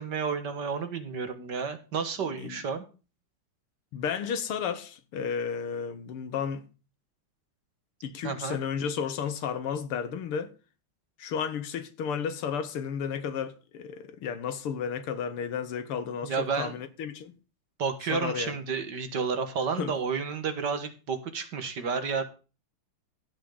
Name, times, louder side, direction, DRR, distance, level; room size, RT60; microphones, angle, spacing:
voice 1, 0.0-2.8 8.2-8.6 16.2-16.8 17.8-22.2, right 5 dB, 55° right, 2.0 m, -31 dB
voice 2, 3.9-6.6 8.0-10.5 11.2-17.3 18.1-18.6 19.8-19.9, left 7 dB, 90° left, 2.1 m, -33 dB
16.0 x 6.2 x 3.9 m
omnidirectional pair, 2.4 m